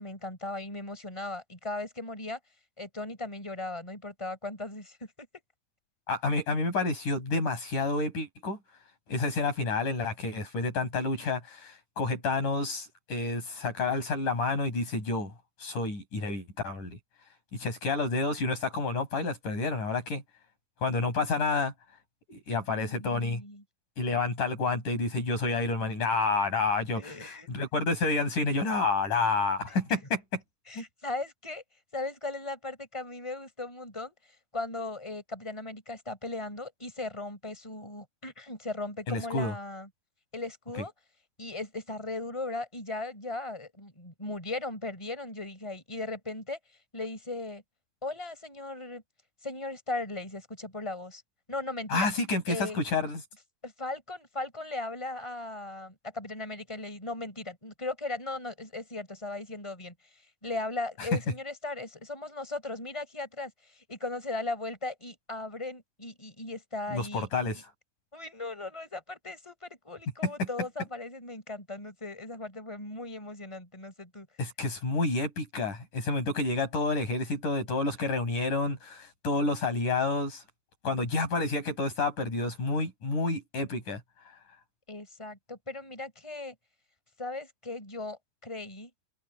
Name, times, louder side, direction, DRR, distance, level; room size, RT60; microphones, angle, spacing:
voice 1, 0.0-2.4 2.8-5.3 22.7-23.6 26.9-27.5 29.9-30.0 30.7-31.6 31.9-34.1 34.5-39.9 40.3-40.9 41.4-46.6 46.9-47.6 48.0-49.0 49.4-51.2 51.5-52.1 52.5-52.8 53.6-67.3 67.5-67.6 68.1-74.3 84.9-86.6 87.2-88.9, left 2 dB, 10° left, 7.2 m, -37 dB
voice 2, 6.1-8.6 9.1-15.3 15.6-17.0 17.5-20.2 20.8-21.7 22.3-23.4 24.0-30.4 30.8-30.9 39.1-39.5 51.9-53.2 66.9-67.6 74.4-80.4 80.8-84.0, left 3 dB, 60° left, 8.5 m, -29 dB
omnidirectional pair, 4.0 m